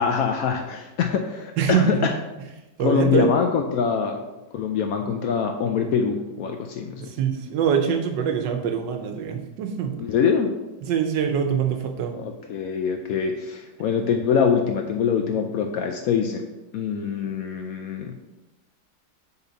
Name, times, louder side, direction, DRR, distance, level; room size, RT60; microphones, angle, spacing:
voice 1, 0.0-2.1 2.8-4.2 4.5-7.1 10.0-10.5 12.1-16.4 16.7-18.1, left 6 dB, 70° left, 4 dB, 0.8 m, -24 dB
voice 2, 1.6-2.0 2.8-3.3 7.0-9.9 10.8-12.2, right 7 dB, 85° right, 5 dB, 1.4 m, -24 dB
6.9 x 4.2 x 4.0 m, 1.0 s
omnidirectional pair, 1.9 m